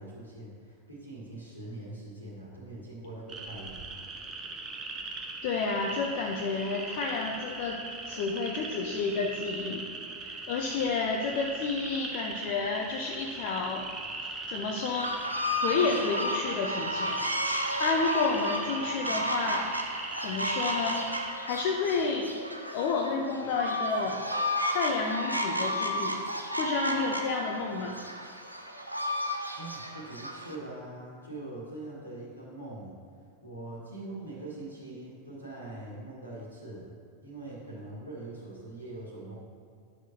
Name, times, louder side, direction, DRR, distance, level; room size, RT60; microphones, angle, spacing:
voice 1, 0.0-4.0 29.6-33.0 33.4-37.0 37.2-39.3, right 2 dB, 80° left, -5 dB, 1.6 m, -42 dB
sound 1, 3.3-21.3, right 3 dB, 25° right, 0.8 m, -40 dB
voice 2, 5.4-7.8 8.0-9.8 10.2-13.8 14.5-15.1 15.6-17.2 17.8-19.7 20.2-21.1 21.5-22.3 22.7-24.2 24.7-26.2 26.6-28.0, left 4 dB, 50° left, 0 dB, 0.6 m, -30 dB
sound 2, 14.9-30.5, equal, 90° right, 0.6 m, -32 dB
10.5 x 6.3 x 2.7 m, 2.3 s
figure-of-eight pair, 90°, 0 cm